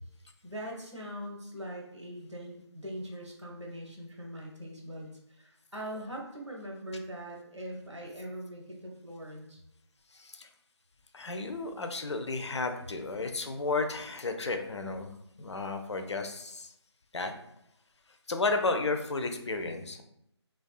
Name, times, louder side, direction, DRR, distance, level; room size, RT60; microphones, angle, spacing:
voice 1, 0.4-9.6, equal, 85° right, -1 dB, 0.8 m, -42 dB
voice 2, 10.1-10.5 11.1-15.1 15.4-16.7 17.1-17.3 18.3-20.0, left 3 dB, 75° left, 6 dB, 0.4 m, -33 dB
2.3 x 2.3 x 2.4 m, 0.76 s
figure-of-eight pair, 155°, 15 cm